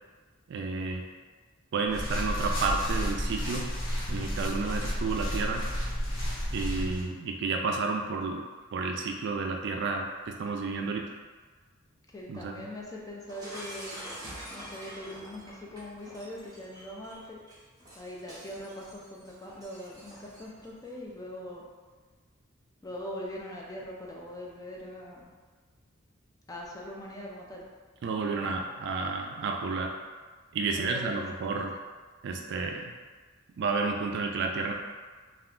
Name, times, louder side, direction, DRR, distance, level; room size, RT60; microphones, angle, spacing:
voice 1, 0.5-1.0 1.7-3.7 4.1-5.7 6.5-8.4 8.7-11.1 12.3-12.6 28.0-29.9 30.5-31.8 32.2-32.9 33.6-34.7, right 4 dB, 60° right, 2 dB, 0.3 m, -31 dB
sound 1, 1.9-7.0, equal, 90° left, 0.9 m, -32 dB
voice 2, 12.1-14.0 14.5-17.4 18.0-21.6 22.8-25.3 26.5-27.7 30.7-31.6, left 1 dB, 15° left, -2 dB, 0.4 m, -42 dB
Shatter, 13.3-20.7, equal, 20° right, 0.7 m, -46 dB
2.4 x 2.2 x 3.6 m, 1.4 s
head